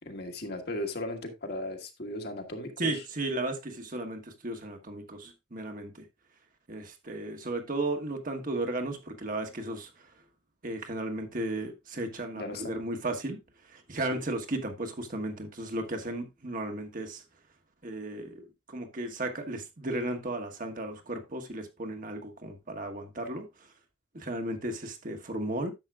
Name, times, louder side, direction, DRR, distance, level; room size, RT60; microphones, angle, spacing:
voice 1, 0.0-3.0 12.4-12.7 14.1-14.2, left 1 dB, 55° left, 1.5 m, -37 dB
voice 2, 2.8-6.0 6.7-9.9 10.6-13.4 13.7-17.2 17.8-23.5 24.1-25.7, right 2 dB, 45° right, 1.3 m, -35 dB
10.5 x 7.3 x 2.4 m
head